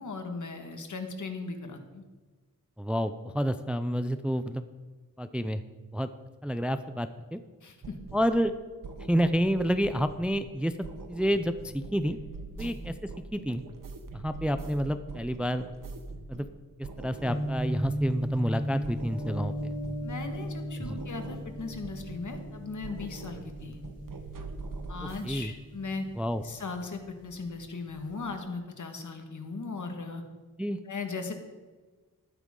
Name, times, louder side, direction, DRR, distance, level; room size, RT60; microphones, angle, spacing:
voice 1, 0.0-2.0 7.6-8.0 12.5-12.8 20.0-23.8 24.9-26.1 26.4-30.2 30.8-31.3, left 3 dB, 60° left, 5 dB, 1.7 m, -38 dB
voice 2, 2.8-4.6 5.2-5.6 5.9-6.1 6.4-7.4 8.1-8.5 9.1-10.7 11.1-12.2 12.6-12.9 13.3-13.6 14.1-15.6 16.3-16.5 16.8-19.7 20.8-21.0 25.2-25.5 26.2-26.4 30.6-30.8, equal, 5° right, 10 dB, 0.4 m, -29 dB
sound 1, 7.8-8.6 8.8-10.6 10.8-16.6 16.8-18.6 18.8-20.6 20.8-22.6 22.8-25.3, right 3 dB, 70° right, 1.2 m, -44 dB
sound 2, 17.1-27.2 27.5-28.2, equal, 45° left, 4.9 m, -37 dB
14.0 x 12.0 x 3.8 m, 1.4 s
wide cardioid pair, 130°, 33 cm